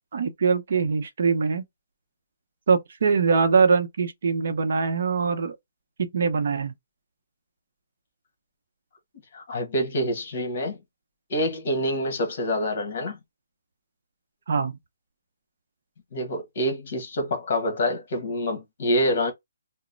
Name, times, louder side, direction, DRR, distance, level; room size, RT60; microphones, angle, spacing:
voice 1, 0.1-1.6 2.7-5.6 6.0-6.7 14.5-14.8, right 5 dB, 60° right, 0.7 m, -23 dB
voice 2, 9.3-10.8 11.3-13.2 16.1-19.3, equal, 45° left, 1.3 m, -26 dB
3.0 x 2.1 x 3.9 m
hypercardioid pair, 170°, 0 cm